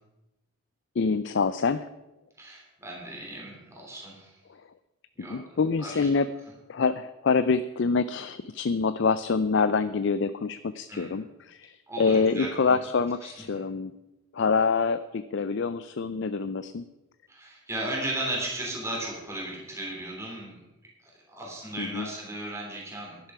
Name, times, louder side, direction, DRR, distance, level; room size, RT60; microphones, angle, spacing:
voice 1, 1.0-1.9 5.3-6.3 6.7-13.9 14.3-16.8 21.8-22.1, left 4 dB, 55° left, 13 dB, 0.4 m, -26 dB
voice 2, 2.4-4.3 5.2-6.1 10.9-11.1 11.9-12.8 13.2-13.3 17.3-20.6 21.0-23.3, right 1 dB, 15° right, -3 dB, 3.3 m, -36 dB
11.5 x 11.5 x 5.7 m, 1.0 s
head